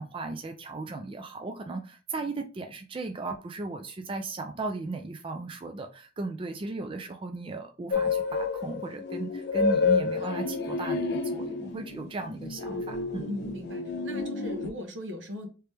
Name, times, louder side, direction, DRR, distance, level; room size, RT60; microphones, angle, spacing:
voice 1, 0.0-13.3, right 3 dB, 30° right, 0.4 m, -36 dB
sound 1, 7.9-14.7, left 4 dB, 60° left, 0.5 m, -29 dB
voice 2, 13.3-15.5, left 1 dB, 75° right, 0.9 m, -38 dB
3.2 x 2.9 x 3.3 m
head